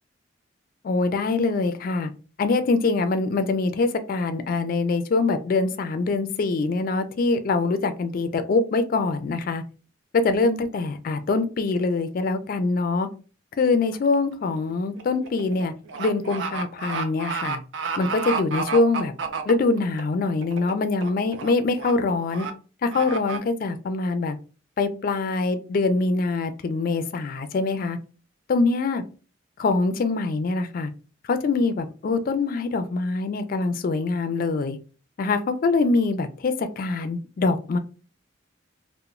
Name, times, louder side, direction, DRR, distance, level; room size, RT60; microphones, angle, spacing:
voice 1, 0.8-2.1 2.4-9.6 10.1-13.1 13.6-15.7 16.0-17.6 18.0-19.1 19.5-22.5 22.8-24.4 24.8-28.0 28.5-29.0 29.6-30.9 31.3-34.8 35.2-37.8, left 3 dB, 50° left, 9 dB, 0.3 m, -24 dB
sound 1, 13.9-14.2 14.5-20.0 20.4-20.7 21.0-21.5 21.8-21.9 22.3-22.5 22.9-23.4, right 5 dB, 70° right, 0.4 m, -30 dB
2.9 x 2.0 x 2.4 m, 0.35 s
head